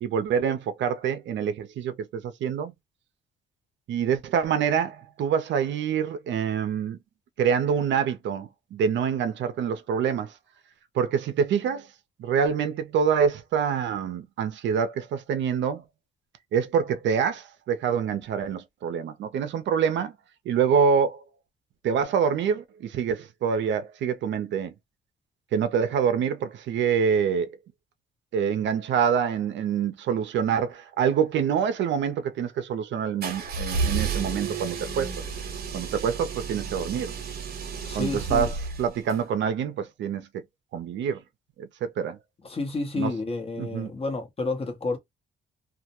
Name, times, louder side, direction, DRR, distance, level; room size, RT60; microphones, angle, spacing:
voice 1, 0.0-2.7 3.9-7.0 7.4-10.3 10.9-11.9 12.2-15.8 16.5-20.1 20.5-21.2 21.8-24.7 25.5-27.5 28.3-35.1 35.7-37.1 37.9-40.3 40.7-41.2 41.6-42.2 43.0-43.1 43.6-43.9, right 7 dB, 65° right, 0.5 m, -26 dB
sound 1, 33.2-39.2, right 5 dB, 50° right, 0.8 m, -31 dB
voice 2, 37.8-38.5 42.4-45.0, left 3 dB, 30° left, 0.9 m, -30 dB
2.2 x 2.1 x 2.8 m
cardioid pair, 90°, 20 cm